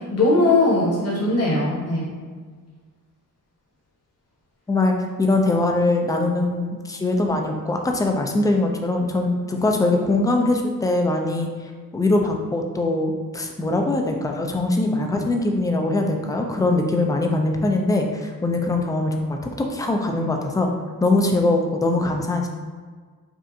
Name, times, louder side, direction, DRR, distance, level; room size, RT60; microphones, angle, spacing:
voice 1, 0.1-2.1, left 2 dB, 45° left, -5 dB, 1.1 m, -19 dB
voice 2, 5.2-11.5 11.9-20.7 21.0-22.5, left 2 dB, 10° left, 2 dB, 0.3 m, -22 dB
5.1 x 2.4 x 2.7 m, 1.5 s
wide cardioid pair, 135°, 34 cm